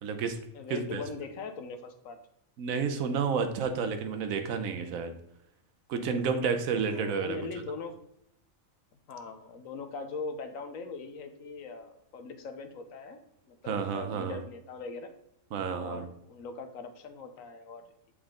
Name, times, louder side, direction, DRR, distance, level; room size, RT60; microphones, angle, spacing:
voice 1, 0.0-0.4 0.7-1.0 2.6-5.1 5.9-7.4 13.7-14.4 15.5-16.0, right 5 dB, 80° right, 7 dB, 1.2 m, -30 dB
voice 2, 0.5-2.2 6.8-8.0 9.1-13.2 13.5-15.1 15.7-17.8, left 4 dB, 80° left, 8 dB, 1.2 m, -41 dB
7.4 x 4.9 x 3.7 m, 0.77 s
omnidirectional pair, 1.4 m